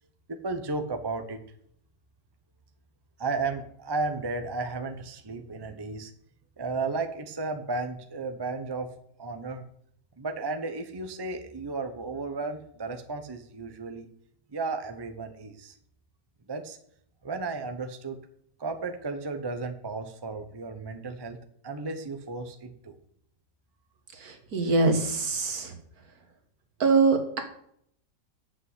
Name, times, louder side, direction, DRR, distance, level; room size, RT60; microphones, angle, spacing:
voice 1, 0.3-1.4 3.2-6.1 6.6-8.9 9.2-9.6 10.2-14.1 14.5-15.7 16.5-16.8 17.2-18.2 18.6-21.4 21.6-22.9, right 3 dB, 25° right, 6 dB, 0.5 m, -34 dB
voice 2, 24.1-25.8 26.8-27.4, right 3 dB, 55° right, 5 dB, 1.9 m, -24 dB
7.5 x 6.2 x 7.9 m, 0.68 s
omnidirectional pair, 1.9 m